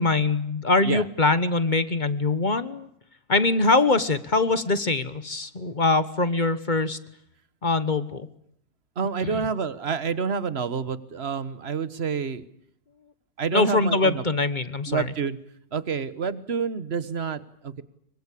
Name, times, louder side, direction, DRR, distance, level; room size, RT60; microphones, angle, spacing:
voice 1, 0.0-2.9 3.3-7.0 7.6-8.3 9.2-9.4 13.5-15.1, left 3 dB, 35° left, 14 dB, 1.2 m, -23 dB
voice 2, 9.0-12.4 13.4-14.2 14.9-15.4 15.7-17.8, right 6 dB, 45° right, 15 dB, 1.5 m, -28 dB
25.5 x 24.0 x 8.5 m, 0.71 s
omnidirectional pair, 1.6 m